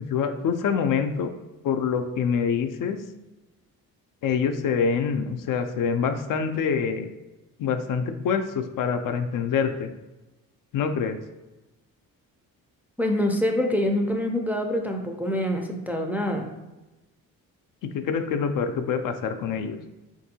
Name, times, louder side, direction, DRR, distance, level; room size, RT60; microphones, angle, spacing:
voice 1, 0.0-1.3 1.6-3.0 4.2-7.1 7.6-9.9 10.7-11.2 17.9-19.8, left 6 dB, 65° left, 7 dB, 0.5 m, -25 dB
voice 2, 13.0-16.5, left 1 dB, 5° right, 1 dB, 0.4 m, -25 dB
3.6 x 2.6 x 2.7 m, 1.1 s
cardioid pair, 70°, 36 cm